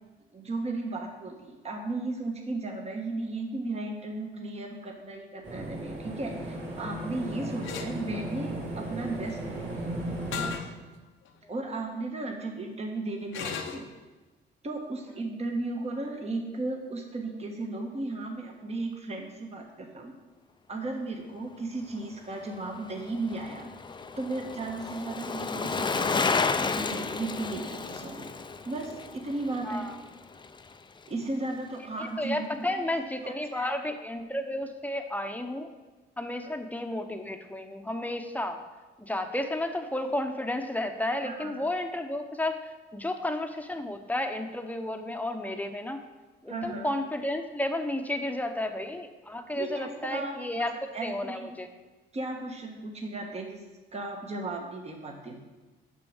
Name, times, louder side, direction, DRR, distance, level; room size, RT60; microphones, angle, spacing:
voice 1, 0.3-9.9 10.3-10.7 11.5-13.9 14.6-20.1 20.7-23.7 24.2-26.3 26.7-28.3 28.6-29.9 31.1-32.9 33.2-33.7 36.4-36.5 41.2-41.7 46.5-46.9 49.5-50.7 50.9-51.6 52.1-53.6 53.9-55.4, right 2 dB, 30° right, 2 dB, 1.3 m, -35 dB
sound 1, 5.4-10.5, right 1 dB, 70° right, 3.2 m, -36 dB
sound 2, 7.6-7.9 10.3-10.7 11.3-11.4 13.3-13.9, left 7 dB, 85° left, 0.9 m, -35 dB
Bicycle, 22.3-30.8 31.1-31.2, left 4 dB, 25° left, 0.5 m, -32 dB
voice 2, 29.6-29.9 32.0-35.7 36.2-38.6 39.1-42.6 42.9-46.0 46.4-50.7 51.0-51.7, left 1 dB, 10° left, 6 dB, 0.9 m, -32 dB
6.8 x 6.1 x 7.2 m, 1.2 s
cardioid pair, 90°, 20 cm